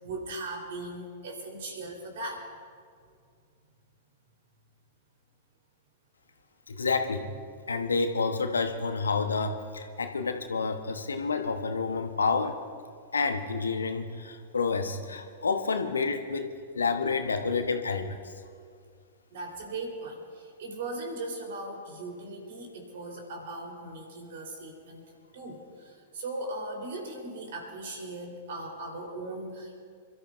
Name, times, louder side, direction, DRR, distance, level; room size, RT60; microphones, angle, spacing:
voice 1, 0.0-2.5 19.3-25.0 25.3-29.8, right 2 dB, 55° right, 1 dB, 3.7 m, -38 dB
voice 2, 6.7-7.3 7.7-12.6 13.1-16.5 16.7-18.3, left 4 dB, 75° left, 7 dB, 1.0 m, -29 dB
28.0 x 13.5 x 2.6 m, 2.2 s
figure-of-eight pair, 100°, 0 cm